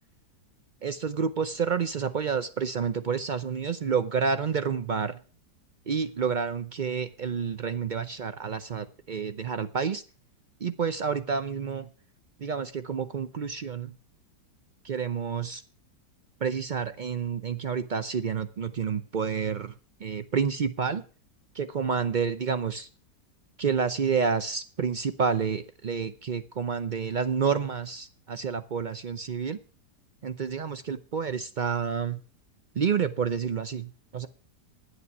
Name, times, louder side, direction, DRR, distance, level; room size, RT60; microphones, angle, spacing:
voice 1, 0.8-5.2 5.9-10.0 10.6-11.9 12.4-13.9 14.8-15.6 16.4-19.7 20.0-21.0 21.5-22.9 23.6-29.6 30.2-32.2 32.7-34.3, right 6 dB, 85° right, 11 dB, 0.4 m, -29 dB
11.0 x 9.9 x 6.0 m, 0.38 s
omnidirectional pair, 1.8 m